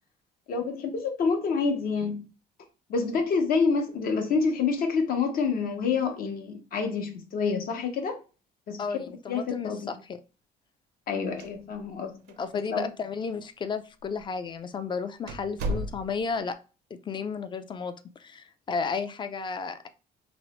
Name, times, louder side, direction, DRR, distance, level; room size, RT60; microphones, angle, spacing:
voice 1, 0.5-2.2 2.9-8.2 8.7-9.0 9.3-9.9 11.1-12.2 12.7-12.8, left 5 dB, 60° left, 0.8 m, -27 dB
voice 2, 8.8-10.2 12.4-16.6 17.1-17.9 18.2-19.9, left 5 dB, 30° left, 0.3 m, -33 dB
sound 1, 11.2-12.0 12.3-12.4 13.1-13.2 14.0-14.2 14.6-14.7 15.3-16.4, equal, 85° right, 0.5 m, -34 dB
2.9 x 2.1 x 2.9 m
cardioid pair, 110°, 17 cm